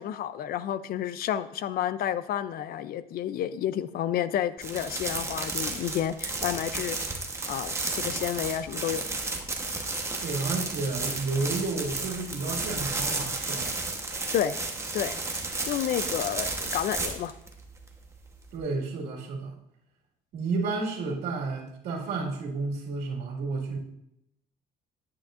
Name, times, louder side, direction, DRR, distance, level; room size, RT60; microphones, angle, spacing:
voice 1, 0.0-7.0 7.5-9.2 14.3-14.6 14.9-15.2 15.7-17.3, left 10 dB, 60° left, 15 dB, 0.5 m, -30 dB
sound 1, 4.6-18.6, right 3 dB, 15° right, 1.1 m, -33 dB
sound 2, 5.3-6.0 6.4-6.7 7.4-8.4 8.9-10.0, right 3 dB, 40° right, 2.5 m, -49 dB
voice 2, 10.2-13.7 18.5-19.5 20.3-23.8, right 3 dB, 75° right, -4 dB, 2.1 m, -31 dB
10.0 x 8.6 x 2.5 m, 0.77 s
cardioid pair, 110°, 17 cm